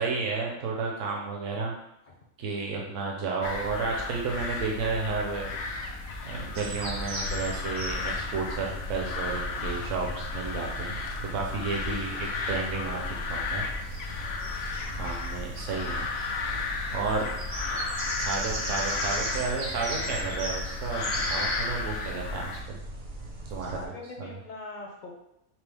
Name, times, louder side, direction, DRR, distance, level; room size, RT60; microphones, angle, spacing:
voice 1, 0.0-1.7 2.4-5.6 5.9-11.0 11.3-13.0 13.3-13.6 14.2-14.4 14.9-16.0 16.5-17.3 17.6-22.8 23.5-23.9 24.2-24.3, right 4 dB, 70° right, -1 dB, 1.1 m, -32 dB
sound 1, 3.4-22.6, left 4 dB, 80° left, 1.0 m, -34 dB
sound 2, 6.5-23.8, right 2 dB, 45° right, 0.7 m, -37 dB
voice 2, 23.6-25.1, left 3 dB, 45° left, -1 dB, 0.7 m, -42 dB
5.8 x 2.0 x 3.4 m, 0.80 s
omnidirectional pair, 1.4 m